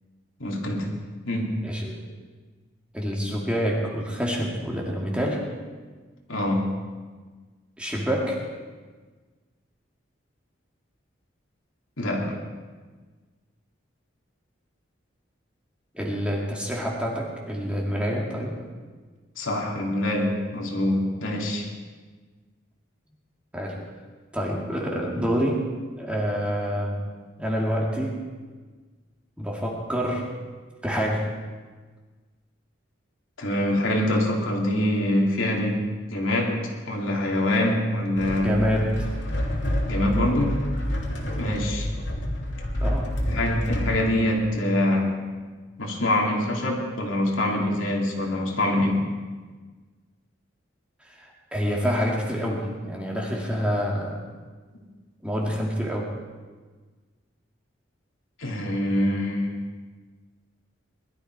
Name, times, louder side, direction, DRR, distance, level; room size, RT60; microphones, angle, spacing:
voice 1, 0.4-1.6 6.3-6.8 12.0-12.4 19.4-21.7 33.4-35.8 36.1-38.6 39.9-40.6 41.4-41.9 43.3-45.1 45.8-49.1 58.4-59.6, left 1 dB, 90° left, -1 dB, 2.9 m, -25 dB
voice 2, 1.6-2.0 2.9-5.4 7.8-8.4 15.9-18.6 23.5-23.8 24.3-25.7 26.0-27.0 27.4-28.2 29.4-30.3 30.8-31.3 38.4-39.1 42.8-43.1 51.0-54.2 55.2-56.1, equal, 5° right, -2 dB, 2.2 m, -27 dB
sound 1, 38.2-44.0, left 1 dB, 70° left, 2.8 m, -28 dB
20.5 x 13.0 x 4.7 m, 1.4 s
head